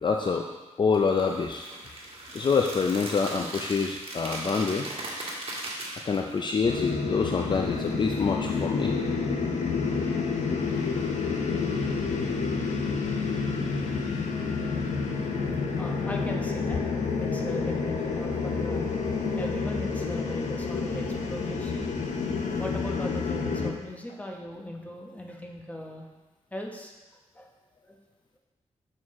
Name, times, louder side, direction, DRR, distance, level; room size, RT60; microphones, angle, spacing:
voice 1, 0.0-0.5 0.8-1.7 2.3-4.9 6.0-8.9 10.7-10.9, left 5 dB, 40° left, 3 dB, 0.4 m, -26 dB
sound 1, 0.9-6.4, right 2 dB, 50° right, 1.7 m, -38 dB
sound 2, 6.6-23.7, left 4 dB, 85° left, 0.8 m, -29 dB
voice 2, 15.8-16.8 17.2-18.9 19.4-21.9 22.6-26.1 26.5-27.5 27.8-28.0, left 1 dB, 10° left, 0 dB, 1.0 m, -39 dB
6.5 x 6.2 x 3.7 m, 1.2 s
cardioid pair, 95°, 12 cm